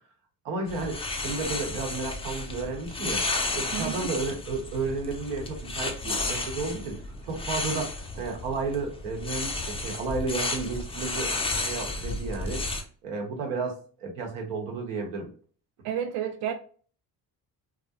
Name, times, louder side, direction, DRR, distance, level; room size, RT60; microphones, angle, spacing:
voice 1, 0.4-3.2 3.5-7.0 7.3-11.3 11.6-12.6 13.0-15.3, right 3 dB, 85° right, 1 dB, 0.8 m, -32 dB
sound 1, 0.7-12.8, left 2 dB, 15° left, 0.3 m, -32 dB
voice 2, 3.7-4.1 15.8-16.5, right 9 dB, 55° right, 5 dB, 0.5 m, -31 dB
2.4 x 2.1 x 2.7 m, 0.43 s
hypercardioid pair, 55°, 49 cm